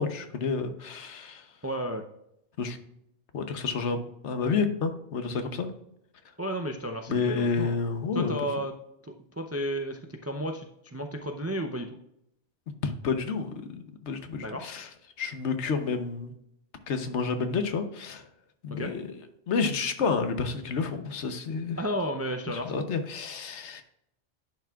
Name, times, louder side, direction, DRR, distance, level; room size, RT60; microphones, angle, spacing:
voice 1, 0.0-1.5 2.6-2.8 3.3-5.7 7.1-8.3 12.8-14.9 15.2-16.3 16.9-18.3 18.6-21.8 22.5-23.8, left 5 dB, 70° left, 8 dB, 1.2 m, -30 dB
voice 2, 1.6-2.0 6.4-7.8 8.1-8.7 9.1-12.0 14.4-14.7 18.7-18.9 21.8-22.8, equal, 20° right, 4 dB, 0.4 m, -33 dB
10.5 x 5.9 x 2.4 m, 0.78 s
omnidirectional pair, 1.2 m